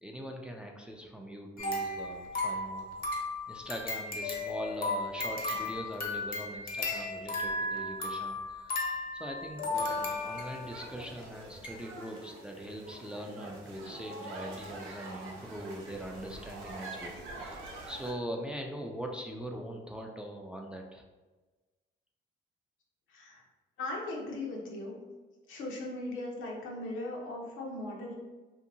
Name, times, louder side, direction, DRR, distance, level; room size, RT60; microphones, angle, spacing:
voice 1, 0.0-2.9 3.5-21.0, equal, 5° right, 1 dB, 0.3 m, -42 dB
sound 1, 1.6-10.7 11.2-11.3 11.6-11.8, left 2 dB, 45° left, 0.7 m, -35 dB
sound 2, 9.7-18.1, right 2 dB, 90° right, 0.6 m, -45 dB
voice 2, 23.1-23.4 23.8-25.0 25.5-28.1, left 2 dB, 85° left, -2 dB, 0.8 m, -38 dB
2.7 x 2.6 x 2.6 m, 1.2 s
cardioid pair, 90°, 20 cm